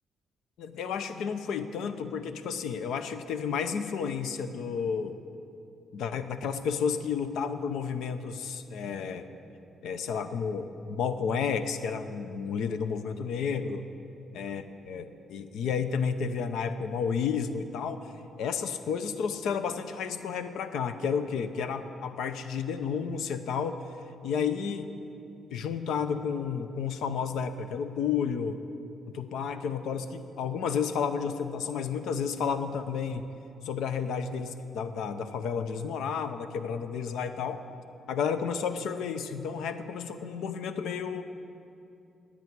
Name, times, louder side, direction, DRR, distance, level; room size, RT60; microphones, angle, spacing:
voice 1, 0.6-5.2 5.9-9.3 9.8-13.8 14.3-18.1 18.4-23.8 24.2-24.9 25.5-28.6 29.1-33.2 33.6-37.6 38.1-41.2, left 6 dB, 85° left, 10 dB, 0.7 m, -31 dB
10.5 x 8.7 x 9.5 m, 2.7 s
cardioid pair, 95°, 0 cm